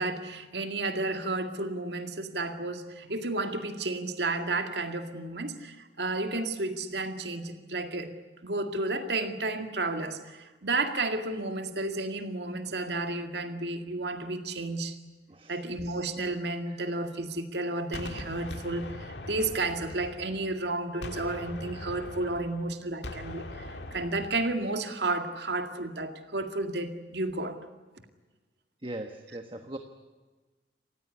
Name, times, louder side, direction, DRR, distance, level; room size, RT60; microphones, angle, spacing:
voice 1, 0.0-8.1 8.4-15.0 15.5-23.7 23.9-27.6, right 2 dB, 75° right, 2.1 m, -32 dB
Gunshot gunfire, 17.9-20.6 21.0-24.6, left 1 dB, 80° left, 2.0 m, -41 dB
voice 2, 28.8-29.8, right 1 dB, 30° right, 1.2 m, -39 dB
28.5 x 15.5 x 9.7 m
head